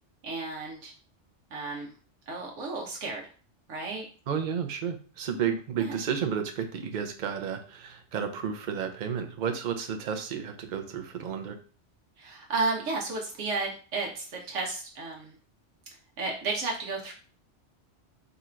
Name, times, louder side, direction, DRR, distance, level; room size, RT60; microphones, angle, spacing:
voice 1, 0.2-0.9 1.5-1.9 2.3-3.2 3.7-4.0 5.8-6.0 12.2-15.3 16.2-17.1, right 3 dB, 85° right, -1 dB, 1.1 m, -33 dB
voice 2, 4.3-11.6, right 7 dB, 50° right, 7 dB, 0.6 m, -32 dB
3.9 x 2.5 x 4.3 m, 0.40 s
omnidirectional pair, 1.2 m